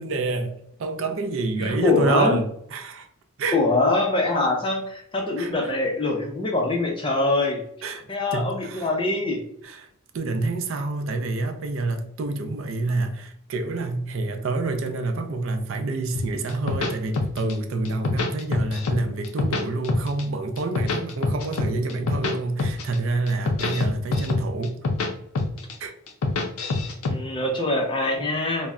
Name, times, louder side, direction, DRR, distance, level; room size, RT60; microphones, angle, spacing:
voice 1, 0.0-3.1 3.4-3.6 5.4-5.5 7.8-8.1 8.3-8.9 9.6-9.9 10.1-24.7 25.8-25.9, right 3 dB, 60° right, 0.4 m, -27 dB
voice 2, 1.6-2.4 3.5-7.6 8.1-9.4 27.1-28.7, left 2 dB, 20° left, 0.4 m, -24 dB
sound 1, 16.2-17.5 17.9-19.0 19.2-20.2 20.6-22.3 22.6-22.9 23.3-25.1 25.4-25.7 26.1-27.1, left 3 dB, 80° left, 0.5 m, -25 dB
2.2 x 2.0 x 3.6 m
head